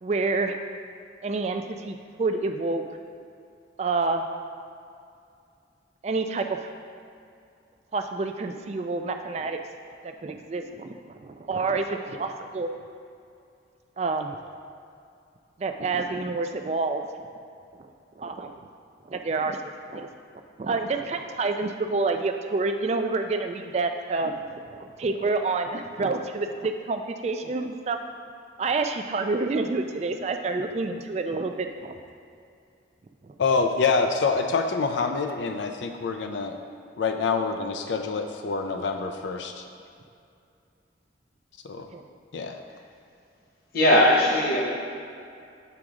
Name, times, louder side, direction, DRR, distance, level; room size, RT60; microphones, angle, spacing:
voice 1, 0.0-0.6 1.2-2.8 3.8-4.2 6.0-6.4 7.9-9.6 10.2-12.7 14.0-14.4 15.6-17.0 18.2-18.5 19.1-19.6 19.9-20.1 20.6-28.0 28.6-32.0 33.2-33.3 41.9-42.0, right 3 dB, 35° right, 5 dB, 0.3 m, -28 dB
voice 2, 33.4-36.6 37.0-39.6 41.6-41.9 42.3-42.6, left 4 dB, 75° left, 5 dB, 0.4 m, -26 dB
voice 3, 43.7-44.6, equal, 50° left, -3 dB, 1.2 m, -18 dB
7.7 x 3.6 x 4.8 m, 2.5 s
head